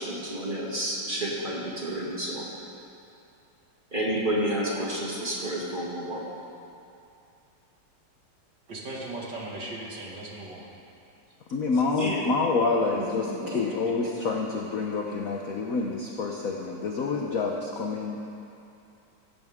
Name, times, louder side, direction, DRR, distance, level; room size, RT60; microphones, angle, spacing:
voice 1, 0.0-2.4 3.9-6.2 12.0-12.3, right 1 dB, 25° right, -5 dB, 2.3 m, -30 dB
voice 2, 8.7-10.7 13.3-14.3, right 1 dB, 55° right, -3 dB, 2.6 m, -38 dB
voice 3, 11.5-18.3, left 4 dB, 55° left, 1 dB, 1.1 m, -28 dB
16.5 x 16.0 x 3.7 m, 2.6 s
omnidirectional pair, 2.2 m